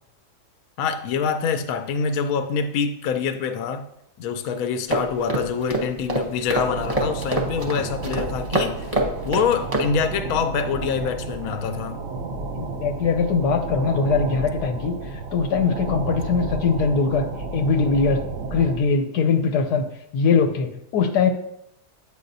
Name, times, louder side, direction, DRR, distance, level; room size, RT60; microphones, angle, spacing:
voice 1, 0.8-3.9 4.2-9.0 9.2-12.0, left 6 dB, 70° left, 1.0 m, -25 dB
sound 1, 4.9-9.9, right 1 dB, 30° right, 0.8 m, -26 dB
sound 2, 6.5-18.8, right 3 dB, 60° right, 0.8 m, -32 dB
voice 2, 12.5-14.9 15.3-19.9 20.1-21.3, left 5 dB, 85° left, 1.3 m, -21 dB
8.4 x 5.2 x 2.7 m
omnidirectional pair, 1.7 m